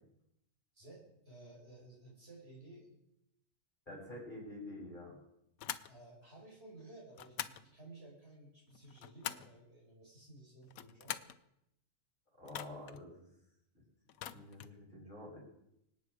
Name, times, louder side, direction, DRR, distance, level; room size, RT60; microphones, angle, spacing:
voice 1, 0.7-2.9 5.9-11.3, right 2 dB, 45° right, -3 dB, 5.1 m, -55 dB
voice 2, 3.9-5.2 12.4-13.2 13.7-13.8 14.3-15.4, left 1 dB, 35° left, -2 dB, 6.5 m, -48 dB
sound 1, 5.6-5.9 7.1-7.6 8.7-9.6 10.6-11.4 12.5-13.0 14.1-14.8, left 11 dB, 80° left, 1.2 m, -44 dB
25.5 x 9.0 x 4.9 m, 0.82 s
omnidirectional pair, 1.5 m